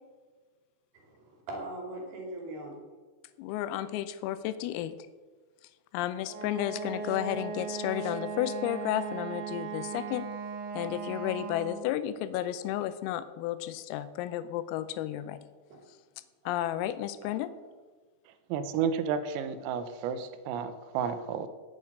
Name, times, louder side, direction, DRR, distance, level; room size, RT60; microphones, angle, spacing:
voice 1, 0.9-2.8 15.7-15.8 16.4-16.6 17.2-17.3, right 1 dB, 50° right, 0 dB, 4.0 m, -41 dB
voice 2, 3.4-5.0 5.9-10.3 10.7-15.4 16.5-17.5, left 12 dB, 90° left, 13 dB, 3.3 m, -32 dB
Wind instrument woodwind instrument, 6.3-12.0, right 5 dB, 70° right, 3.2 m, -38 dB
voice 3, 18.5-21.5, right 7 dB, 90° right, 11 dB, 3.5 m, -31 dB
8.5 x 8.4 x 8.7 m, 1.4 s
omnidirectional pair, 6.0 m